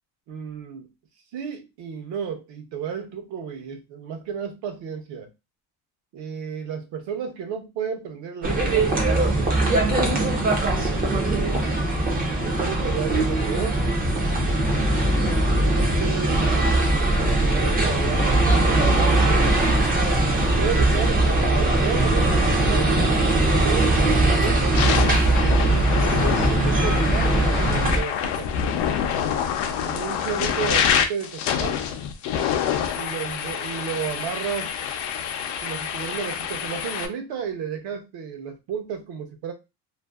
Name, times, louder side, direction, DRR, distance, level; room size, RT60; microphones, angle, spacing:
voice 1, 0.3-0.9 1.3-5.3 6.1-11.5 12.4-13.8 15.2-16.5 17.2-19.2 20.6-23.2 23.6-24.8 25.9-28.5 29.8-31.8 32.9-34.7 35.4-39.5, right 7 dB, 65° right, 0.9 m, -33 dB
sound 1, 8.4-28.0, right 2 dB, 20° right, 0.4 m, -20 dB
sound 2, 23.9-24.1 24.6-37.1, left 8 dB, 65° left, 0.5 m, -26 dB
2.6 x 2.5 x 2.3 m
cardioid pair, 165°, 45 cm